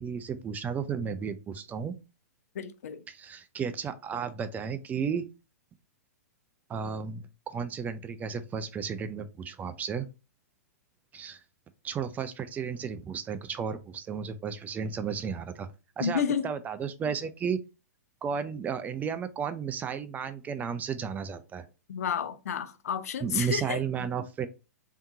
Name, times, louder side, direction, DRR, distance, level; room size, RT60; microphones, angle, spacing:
voice 1, 0.0-1.9 3.1-5.2 6.7-10.1 11.1-11.4 11.8-15.7 16.0-17.6 18.2-21.7 23.2-24.5, right 6 dB, 20° right, 0.4 m, -33 dB
voice 2, 2.5-3.0 16.0-16.5 21.9-23.8, left 7 dB, 70° left, 0.5 m, -31 dB
3.5 x 2.8 x 2.6 m
hypercardioid pair, 115°, 9 cm